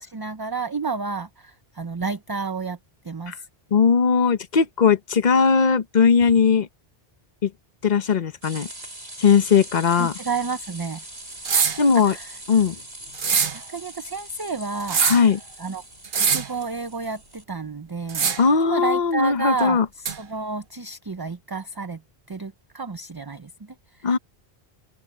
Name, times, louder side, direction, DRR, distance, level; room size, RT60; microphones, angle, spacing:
voice 1, 0.0-2.8 3.0-3.4 10.0-11.0 12.1-12.3 13.7-15.0 15.6-15.8 16.1-18.3 18.6-19.8 20.2-22.0 22.3-23.5 24.0-24.2, right 4 dB, 25° right, 0.6 m, -30 dB
voice 2, 3.7-6.7 7.4-7.5 7.8-8.7 9.2-10.1 11.8-12.2 12.5-12.8 15.0-15.4 18.4-19.9 24.0-24.2, left 6 dB, 45° left, 1.0 m, -19 dB
sound 1, 8.4-17.4, right 1 dB, 75° right, 7.8 m, -42 dB
sound 2, 11.4-11.8 13.1-13.6 14.8-15.3 16.0-16.5 18.1-18.5 20.0-20.2, right 6 dB, 55° right, 1.2 m, -22 dB
open air
omnidirectional pair, 1.1 m